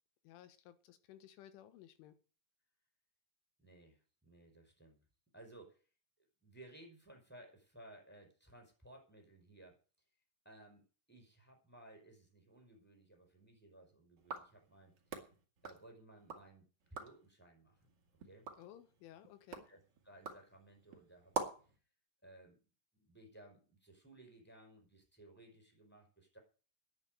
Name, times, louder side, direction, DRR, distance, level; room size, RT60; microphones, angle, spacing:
voice 1, 0.3-2.2 18.6-19.7, left 11 dB, 90° left, 11 dB, 3.8 m, -57 dB
voice 2, 3.6-5.0 5.3-5.8 6.4-9.8 10.4-14.9 15.6-17.8 18.2-18.5 19.6-21.7 22.2-22.6 22.9-26.4, right 1 dB, ahead, 2 dB, 4.6 m, -59 dB
sound 1, 14.2-16.5 16.8-17.3 17.8-21.8, right 4 dB, 60° right, 1.1 m, -47 dB
10.5 x 8.1 x 9.3 m, 0.38 s
omnidirectional pair, 5.5 m